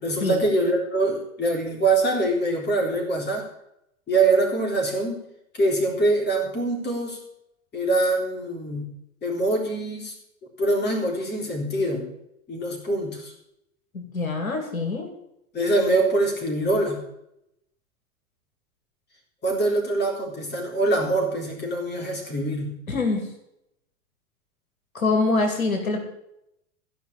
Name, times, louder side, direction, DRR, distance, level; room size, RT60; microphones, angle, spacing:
voice 1, 0.0-3.5 4.1-5.2 5.5-7.2 7.7-8.9 9.2-10.1 10.6-12.1 12.5-13.3 15.5-17.0 19.4-22.7, right 2 dB, 25° left, 1 dB, 4.2 m, -24 dB
voice 2, 13.9-15.1 22.9-23.3 24.9-26.0, left 3 dB, 85° left, 4 dB, 2.5 m, -24 dB
14.5 x 5.9 x 8.6 m, 0.80 s
hypercardioid pair, 95°, 40 cm